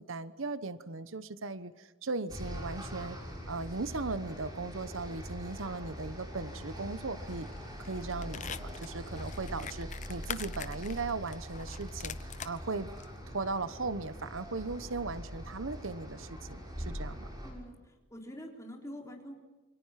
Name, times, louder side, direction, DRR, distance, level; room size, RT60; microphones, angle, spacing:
voice 1, 0.0-3.2 3.5-7.5 7.8-12.9 13.3-17.3, right 3 dB, 80° right, 14 dB, 1.0 m, -38 dB
sound 1, 2.3-17.5, equal, 20° right, 6.7 m, -43 dB
sound 2, 7.3-7.6 7.8-12.6 13.0-13.1, left 8 dB, 35° left, 0.8 m, -43 dB
voice 2, 17.4-19.4, equal, 15° left, 1 dB, 3.8 m, -46 dB
28.0 x 25.0 x 5.9 m, 1.2 s
head